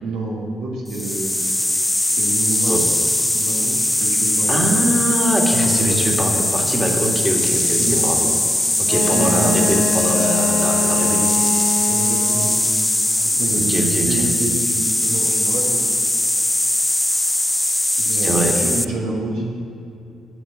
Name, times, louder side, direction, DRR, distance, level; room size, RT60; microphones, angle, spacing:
voice 1, 0.0-1.5 2.1-2.9 3.3-4.9 5.7-6.1 7.7-8.1 8.9-9.7 11.9-12.6 13.2-15.9 18.0-19.5, right 2 dB, 70° right, -3 dB, 1.4 m, -27 dB
sound 1, 0.9-18.8, left 1 dB, 10° left, 0.4 m, -20 dB
voice 2, 4.5-8.3 8.8-11.4 13.6-14.3 18.2-18.5, right 1 dB, 15° right, 0 dB, 1.9 m, -22 dB
Wind instrument woodwind instrument, 8.9-12.6, left 5 dB, 40° left, 1.1 m, -25 dB
8.1 x 6.7 x 7.3 m, 2.6 s
figure-of-eight pair, 40°, 0 cm